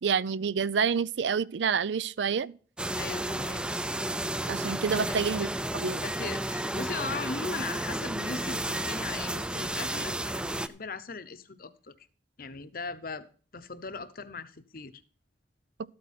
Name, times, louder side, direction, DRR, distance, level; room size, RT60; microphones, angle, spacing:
voice 1, 0.0-2.5 4.5-5.5 5.7-6.0, right 6 dB, 90° right, 0.5 m, -28 dB
sound 1, 2.8-10.7, right 1 dB, 5° right, 0.4 m, -32 dB
voice 2, 3.0-3.8 4.9-5.5 6.0-12.1 12.4-13.3 13.5-15.0, left 4 dB, 55° left, 0.9 m, -39 dB
13.0 x 8.6 x 4.3 m
head